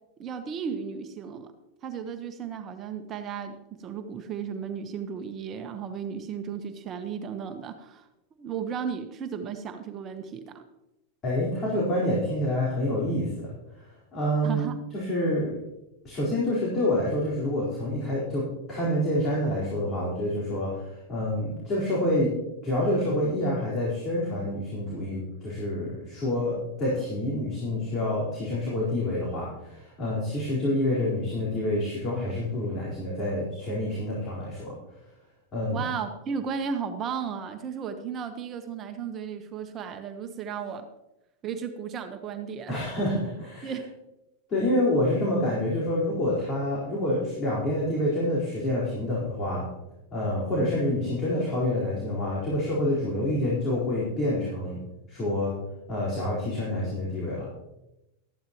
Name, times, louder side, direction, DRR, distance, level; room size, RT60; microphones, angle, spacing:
voice 1, 0.2-1.5 1.8-8.1 8.4-10.6 14.4-14.8 35.7-40.8 41.4-42.8 43.1-43.2 43.6-43.9, right 7 dB, 35° right, 6 dB, 1.1 m, -34 dB
voice 2, 11.2-13.5 13.8-14.7 14.9-15.5 16.0-22.3 22.6-34.7 35.5-35.8 42.7-43.7 44.5-49.7 50.1-54.8 55.1-55.5 55.9-57.5, left 1 dB, 35° left, -6 dB, 4.5 m, -27 dB
13.5 x 11.0 x 3.1 m, 0.92 s
hypercardioid pair, 105°, 0 cm